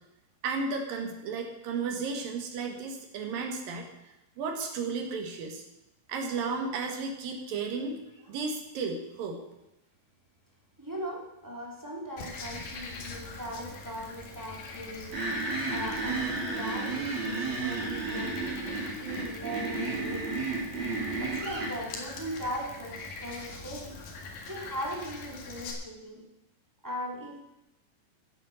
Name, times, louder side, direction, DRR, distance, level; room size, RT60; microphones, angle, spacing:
voice 1, 0.4-5.6 6.1-8.0 8.3-9.4, right 4 dB, 85° right, 3 dB, 3.4 m, -34 dB
voice 2, 10.8-15.2 15.7-20.4 21.2-24.0 24.4-26.2 26.8-27.4, equal, 5° right, -3 dB, 3.0 m, -39 dB
Frog, 12.2-25.7, left 4 dB, 85° left, 3.6 m, -43 dB
sound 1, 15.1-21.7, right 3 dB, 55° right, 5.0 m, -32 dB
14.5 x 8.6 x 6.4 m, 0.91 s
omnidirectional pair, 3.9 m